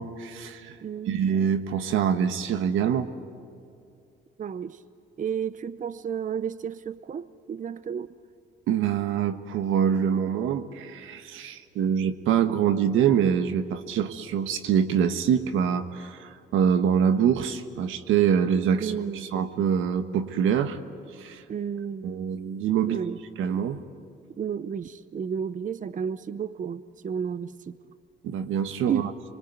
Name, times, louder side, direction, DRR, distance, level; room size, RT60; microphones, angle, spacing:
voice 1, 0.0-0.8 1.1-3.1 8.7-20.8 21.2-21.4 22.0-23.0 23.4-23.8 28.2-29.1, right 8 dB, 90° right, 10 dB, 1.4 m, -25 dB
voice 2, 0.8-1.5 4.4-4.8 5.2-8.1 18.8-19.3 21.5-22.1 22.9-23.2 24.4-27.7 28.9-29.1, right 7 dB, 40° right, 15 dB, 0.8 m, -32 dB
26.5 x 24.0 x 9.3 m, 2.5 s
cardioid pair, 90°, 20 cm